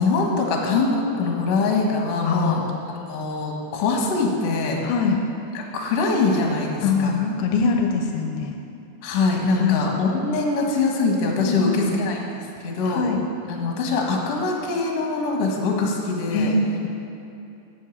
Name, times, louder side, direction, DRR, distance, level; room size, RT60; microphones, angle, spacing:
voice 1, 0.0-2.6 3.1-4.8 5.7-7.2 9.0-13.1 13.5-16.5, left 3 dB, 55° left, 0 dB, 1.9 m, -23 dB
voice 2, 2.2-2.7 4.8-5.2 6.8-8.5 9.5-9.8 11.4-12.0 12.8-13.2 16.3-16.9, left 4 dB, 85° left, 3 dB, 2.5 m, -23 dB
8.9 x 8.6 x 7.1 m, 2.7 s
omnidirectional pair, 4.6 m